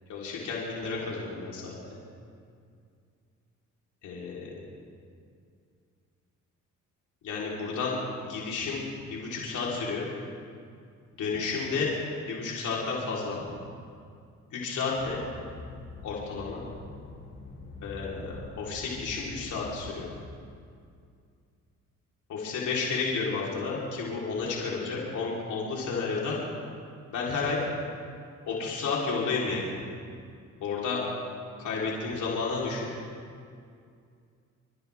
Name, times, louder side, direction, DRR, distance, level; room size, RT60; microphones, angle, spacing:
voice 1, 0.1-2.0 4.0-4.5 7.2-8.8 9.1-10.1 11.2-11.9 12.2-13.4 14.5-15.2 16.0-16.6 17.8-20.1 22.3-26.4 27.1-27.6 28.5-29.7 30.6-31.0 31.6-32.9, left 4 dB, 75° left, -5 dB, 3.8 m, -31 dB
sound 1, 14.9-20.2, left 3 dB, 40° left, 3.7 m, -45 dB
29.5 x 14.0 x 3.5 m, 2.3 s
cardioid pair, 90°, 30 cm